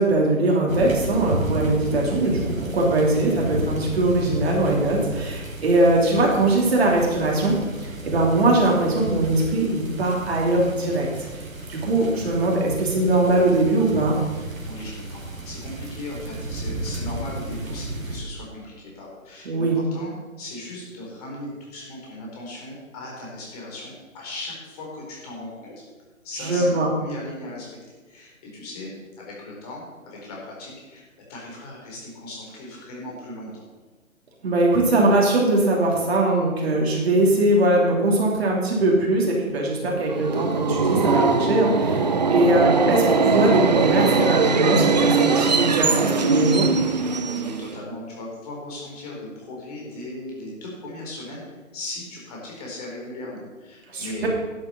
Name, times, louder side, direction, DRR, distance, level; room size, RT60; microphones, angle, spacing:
voice 1, 0.0-11.1 11.7-14.2 19.4-19.8 26.4-26.9 34.4-46.7 53.9-54.3, right 2 dB, 45° right, -2 dB, 2.9 m, -21 dB
sound 1, 0.7-18.2, right 1 dB, 70° right, 3.0 m, -33 dB
voice 2, 14.3-25.8 26.2-27.7 28.1-28.9 29.2-31.0 31.3-33.6 46.9-51.4 51.7-54.3, left 2 dB, 30° left, -3 dB, 4.4 m, -37 dB
Subway metro underground, 40.1-47.8, right 4 dB, 30° right, 0.6 m, -21 dB
11.0 x 7.9 x 7.1 m, 1.3 s
figure-of-eight pair, 140°, 41 cm